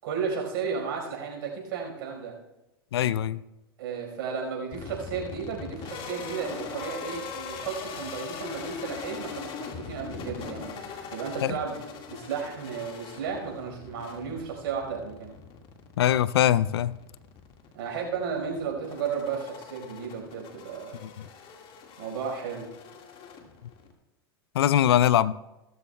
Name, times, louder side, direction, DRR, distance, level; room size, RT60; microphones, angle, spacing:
voice 1, 0.0-2.3 3.8-15.3 17.7-21.0 22.0-22.7, right 6 dB, 65° right, 1 dB, 4.7 m, -34 dB
voice 2, 2.9-3.4 11.4-11.6 16.0-17.0 21.0-21.1 24.5-25.3, left 11 dB, 80° left, 19 dB, 0.4 m, -22 dB
sound 1, 4.7-23.9, left 6 dB, 45° left, 1.8 m, -42 dB
17.0 x 13.5 x 2.3 m, 0.95 s
hypercardioid pair, 95°, 13 cm